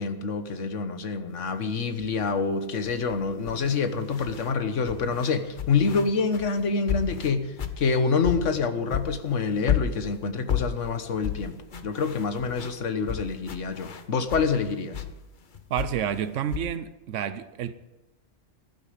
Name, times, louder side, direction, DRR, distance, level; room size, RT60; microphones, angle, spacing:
voice 1, 0.0-15.0, left 5 dB, 85° left, 9 dB, 1.5 m, -27 dB
sound 1, 2.0-2.2 2.8-4.5 4.9-8.6 8.9-14.6 14.9-16.6, left 8 dB, 45° left, 1.0 m, -33 dB
voice 2, 15.7-17.7, right 9 dB, 85° right, 13 dB, 1.0 m, -29 dB
15.0 x 12.0 x 5.0 m, 1.0 s
omnidirectional pair, 1.2 m